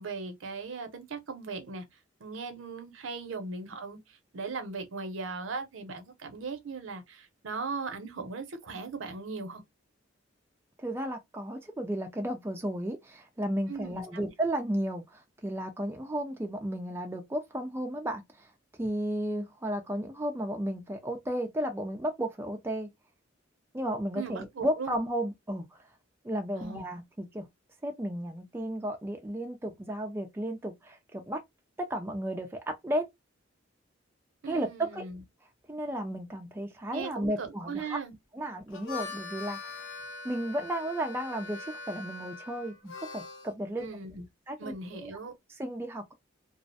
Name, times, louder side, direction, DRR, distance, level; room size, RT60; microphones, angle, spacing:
voice 1, 0.0-1.8 2.2-4.0 4.3-9.6 13.7-14.3 24.1-25.0 26.5-26.9 34.4-35.2 36.9-38.1 43.8-44.3 44.6-45.3, right 4 dB, 75° right, 0.6 m, -38 dB
voice 2, 10.8-18.5 18.8-22.9 23.7-25.7 26.2-27.5 27.8-31.4 31.8-33.1 34.5-35.0 35.7-38.0 38.3-39.9 40.2-43.9 44.5-44.7 45.0-45.1 45.6-46.1, right 1 dB, 10° right, 0.3 m, -33 dB
Harmonica, 38.6-43.5, left 4 dB, 70° left, 0.6 m, -42 dB
2.4 x 2.1 x 2.5 m
head